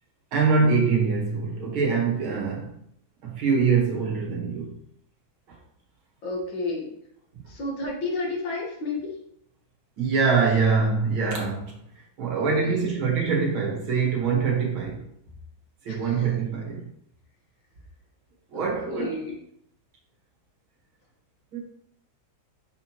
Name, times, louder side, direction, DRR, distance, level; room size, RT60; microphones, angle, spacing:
voice 1, 0.3-2.7 3.2-4.8 10.0-11.8 12.2-15.1 15.8-16.8 18.5-19.2 21.5-21.6, right 5 dB, 85° right, -2 dB, 2.3 m, -24 dB
voice 2, 6.2-6.9 7.5-9.2 12.4-12.9 15.9-16.4 18.5-19.4, left 2 dB, 75° left, -3 dB, 2.3 m, -32 dB
5.9 x 5.4 x 3.0 m, 0.72 s
omnidirectional pair, 2.2 m